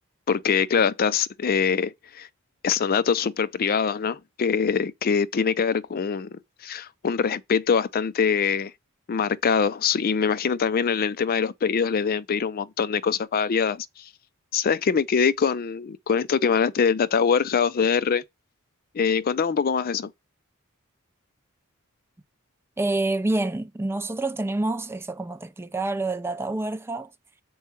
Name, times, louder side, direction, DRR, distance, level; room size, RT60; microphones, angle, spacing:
voice 1, 0.3-2.3 2.6-8.7 9.1-14.1 14.5-18.2 18.9-20.1, left 6 dB, 45° left, 0.4 m, -23 dB
voice 2, 22.8-27.1, right 2 dB, 10° right, 0.4 m, -27 dB
7.1 x 4.5 x 4.4 m
head